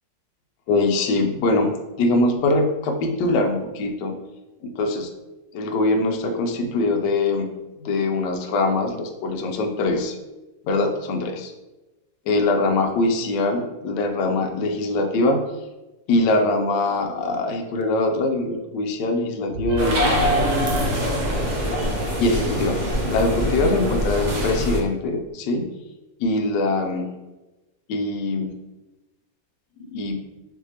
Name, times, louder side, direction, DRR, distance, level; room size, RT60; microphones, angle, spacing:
voice 1, 0.7-4.2 4.6-5.1 5.5-7.6 7.8-10.2 10.6-11.5 12.3-15.5 16.1-20.3 22.2-25.7 26.2-27.1 27.9-28.6 29.8-30.3, left 2 dB, 75° left, 4 dB, 1.2 m, -23 dB
sound 1, 19.5-23.1, right 1 dB, 80° right, 1.3 m, -33 dB
sound 2, 19.8-24.8, equal, 55° right, 0.4 m, -23 dB
6.0 x 2.6 x 2.8 m, 1.1 s
omnidirectional pair, 2.0 m